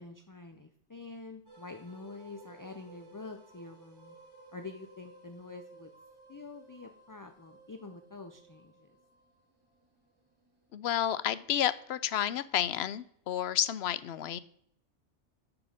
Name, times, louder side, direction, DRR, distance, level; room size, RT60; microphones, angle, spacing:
voice 1, 0.0-4.2 4.5-5.9 6.3-9.0, left 3 dB, 25° left, 6 dB, 0.5 m, -47 dB
sound 1, 1.5-12.6, right 3 dB, 20° right, 2.1 m, -57 dB
voice 2, 10.7-14.4, left 10 dB, 70° left, 16 dB, 0.8 m, -31 dB
9.1 x 6.0 x 6.5 m, 0.71 s
omnidirectional pair, 1.2 m